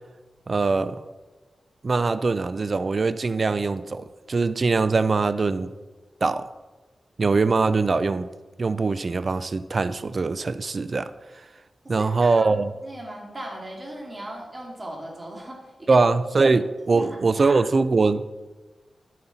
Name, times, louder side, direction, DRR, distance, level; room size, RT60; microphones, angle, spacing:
voice 1, 0.5-1.1 1.8-5.7 6.2-6.5 7.2-8.3 8.6-11.1 11.9-12.7 15.9-18.5, right 3 dB, 50° right, 13 dB, 0.3 m, -22 dB
voice 2, 11.8-12.5 12.8-16.0 16.4-16.5 16.9-17.6, right 1 dB, 30° right, -1 dB, 2.5 m, -37 dB
11.5 x 5.9 x 4.0 m, 1.2 s
cardioid pair, 75°, 0 cm